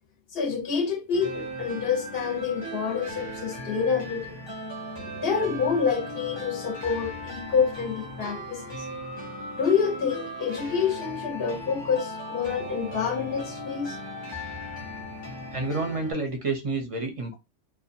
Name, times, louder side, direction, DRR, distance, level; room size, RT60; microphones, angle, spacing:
voice 1, 0.3-4.4 5.2-8.9 9.6-14.0, left 6 dB, 60° left, 0.9 m, -27 dB
sound 1, 1.1-16.1, equal, 25° left, 0.7 m, -37 dB
voice 2, 15.5-17.3, right 3 dB, 35° right, 0.5 m, -29 dB
2.6 x 2.2 x 2.6 m
omnidirectional pair, 1.3 m